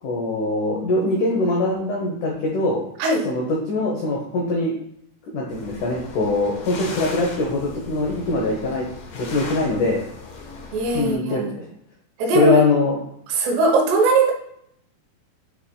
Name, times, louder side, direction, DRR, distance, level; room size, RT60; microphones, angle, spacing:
voice 1, 0.0-2.8 3.2-4.7 5.3-8.9 9.1-10.0 10.9-11.6 12.3-13.0, left 2 dB, 90° left, -1 dB, 1.7 m, -22 dB
sound 1, 5.5-11.1, left 4 dB, 65° left, 2.3 m, -37 dB
voice 2, 10.7-11.5 12.2-12.6 13.3-14.3, right 3 dB, 75° right, 2 dB, 3.0 m, -19 dB
8.7 x 4.9 x 2.3 m, 0.72 s
omnidirectional pair, 5.0 m